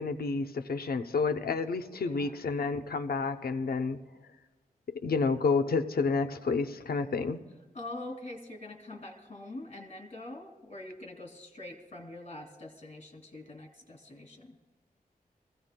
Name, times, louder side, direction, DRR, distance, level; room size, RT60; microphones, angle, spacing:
voice 1, 0.0-4.0 4.9-7.4, left 4 dB, 85° left, 8 dB, 0.7 m, -30 dB
voice 2, 2.0-2.3 7.7-14.6, left 2 dB, 45° left, 1 dB, 2.5 m, -44 dB
24.0 x 16.0 x 2.2 m, 1.3 s
wide cardioid pair, 95°, 15 cm